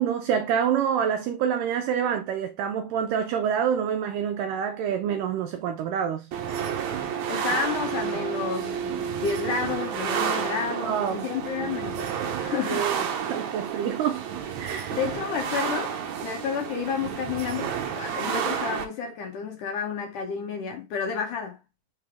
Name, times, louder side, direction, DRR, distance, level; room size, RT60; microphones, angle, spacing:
voice 1, 0.0-6.3 10.8-11.3 12.7-14.3 14.6-14.9, right 8 dB, 90° right, 1.9 m, -27 dB
sound 1, 6.3-18.8, right 8 dB, 70° right, 1.8 m, -30 dB
voice 2, 7.3-13.3 13.8-13.9 14.9-21.6, left 6 dB, 65° left, 2.2 m, -31 dB
5.8 x 3.4 x 4.6 m
omnidirectional pair, 4.4 m